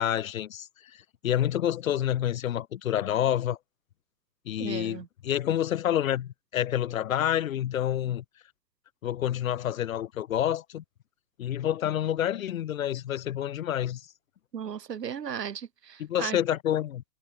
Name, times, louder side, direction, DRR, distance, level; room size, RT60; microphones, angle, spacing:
voice 1, 0.0-3.6 4.5-8.2 9.0-10.8 11.4-14.1 16.0-17.0, left 11 dB, 55° left, 0.5 m, -28 dB
voice 2, 4.6-5.1 14.5-16.4, right 8 dB, 85° right, 0.7 m, -36 dB
figure-of-eight pair, 115°, 49 cm